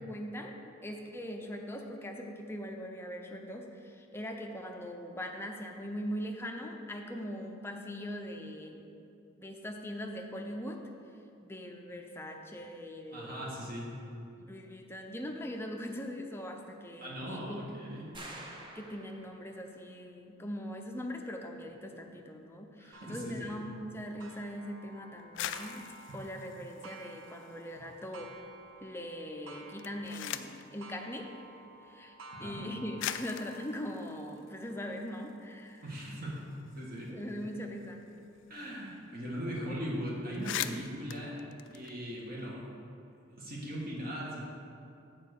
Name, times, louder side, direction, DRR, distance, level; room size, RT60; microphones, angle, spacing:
voice 1, 0.0-8.8 9.3-10.8 11.4-13.5 14.4-17.7 18.7-25.8 26.1-28.4 28.8-31.3 31.8-32.1 32.4-35.8 37.1-38.1, equal, 10° left, 2 dB, 0.5 m, -41 dB
voice 2, 13.1-13.9 17.0-18.2 22.7-23.5 32.3-32.6 35.8-36.4 36.7-37.2 38.5-41.4 41.7-42.7 43.3-44.4, equal, 45° right, -4 dB, 1.5 m, -39 dB
sound 1, 18.1-19.6, right 1 dB, 25° right, 0.7 m, -48 dB
Clock, 22.9-38.2 38.8-38.9 39.5-39.6 40.5-40.6, right 3 dB, 80° right, 0.6 m, -54 dB
sound 2, 25.2-27.8 28.1-28.8 29.6-30.7 31.7-31.8 32.6-32.7 33.0-35.3 35.7-35.8 36.0-38.6 38.9-39.0 39.3-39.6 39.9-40.0 40.2-42.5, left 11 dB, 60° left, 0.3 m, -42 dB
7.3 x 4.5 x 6.7 m, 2.6 s
head